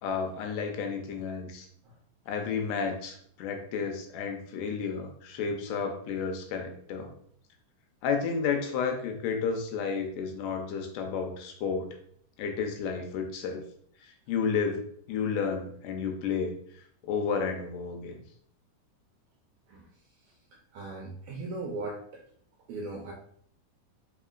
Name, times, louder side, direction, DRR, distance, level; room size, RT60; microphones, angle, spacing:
voice 1, 0.0-1.7 2.3-7.1 8.0-11.9 12.4-13.6 14.0-16.5 17.0-18.2, left 5 dB, 80° left, 4 dB, 2.2 m, -31 dB
voice 2, 20.7-22.2 22.7-23.1, right 2 dB, 80° right, 0 dB, 1.6 m, -38 dB
4.7 x 3.6 x 2.4 m, 0.63 s
omnidirectional pair, 3.8 m